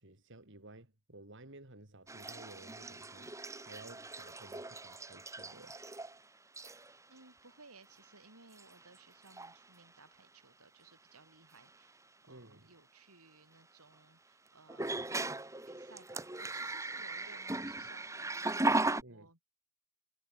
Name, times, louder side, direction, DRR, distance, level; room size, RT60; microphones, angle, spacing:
voice 1, 0.0-5.8 12.3-12.7 19.0-19.3, right 2 dB, 55° right, 3.2 m, -55 dB
sound 1, 2.1-6.2 6.5-7.0 7.9-8.0 8.5-9.0 9.2-9.6 11.6-11.7 14.7-19.0, right 2 dB, 15° right, 1.8 m, -38 dB
voice 2, 7.1-15.0 15.7-19.4, right 3 dB, 80° right, 6.4 m, -60 dB
head